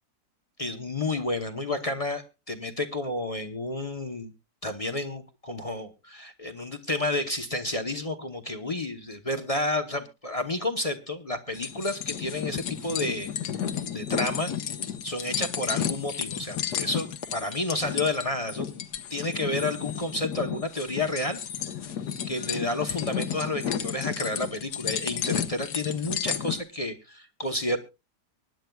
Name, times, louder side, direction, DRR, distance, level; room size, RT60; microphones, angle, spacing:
voice 1, 0.6-4.3 4.6-13.3 13.9-14.5 15.0-18.7 19.1-21.4 22.2-27.8, left 2 dB, 30° left, 7 dB, 0.7 m, -30 dB
sound 1, 11.5-26.6, left 9 dB, 75° left, 1.6 m, -32 dB
24.5 x 10.5 x 2.3 m, 0.29 s
omnidirectional pair, 1.8 m